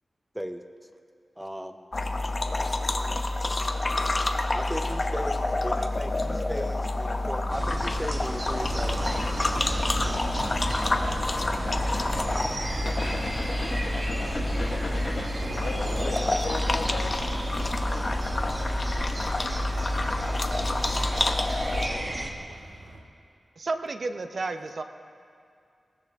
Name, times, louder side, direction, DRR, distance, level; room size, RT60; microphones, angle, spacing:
voice 1, 1.4-1.9 4.5-9.3 10.2-10.3 12.1-13.0, equal, 5° right, 7 dB, 0.5 m, -37 dB
sound 1, 1.9-21.9, left 2 dB, 35° left, 0.8 m, -28 dB
sound 2, 7.5-22.3, right 1 dB, 35° right, 1.3 m, -34 dB
sound 3, 8.4-23.0, right 2 dB, 80° right, 1.9 m, -40 dB
voice 2, 15.6-17.3 21.8-22.5, left 4 dB, 65° left, 6 dB, 0.8 m, -37 dB
voice 3, 23.6-24.8, right 3 dB, 55° right, 8 dB, 0.7 m, -31 dB
20.0 x 17.5 x 3.5 m, 2.3 s
wide cardioid pair, 140°, 0 cm